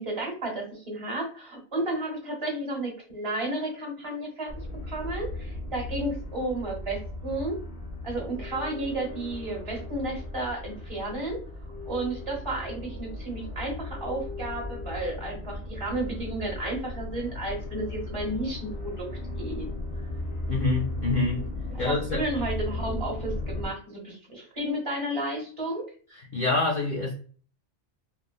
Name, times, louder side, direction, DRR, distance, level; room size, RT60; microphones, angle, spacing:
voice 1, 0.0-7.6 8.0-11.4 11.8-19.1 19.4-19.7 21.8-25.9, right 1 dB, 25° right, -1 dB, 1.0 m, -32 dB
sound 1, 4.5-23.7, left 2 dB, 35° left, 0.8 m, -36 dB
voice 2, 20.5-21.4 21.8-22.2 26.1-27.1, left 3 dB, 65° left, -3 dB, 0.4 m, -26 dB
3.0 x 2.2 x 2.2 m, 0.42 s
omnidirectional pair, 1.4 m